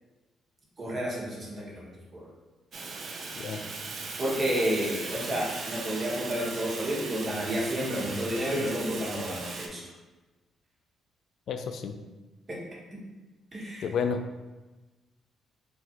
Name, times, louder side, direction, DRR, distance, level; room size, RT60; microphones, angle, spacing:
voice 1, 0.8-1.9 2.2-2.3 3.9-9.8 12.5-12.6 13.5-13.9, equal, 30° right, -4 dB, 1.4 m, -31 dB
Fire, 2.7-9.7, right 3 dB, 55° right, 0.6 m, -38 dB
voice 2, 11.5-12.0 13.8-14.2, left 6 dB, 70° left, 7 dB, 0.3 m, -30 dB
3.8 x 2.5 x 4.4 m, 1.2 s
cardioid pair, 90°, 0 cm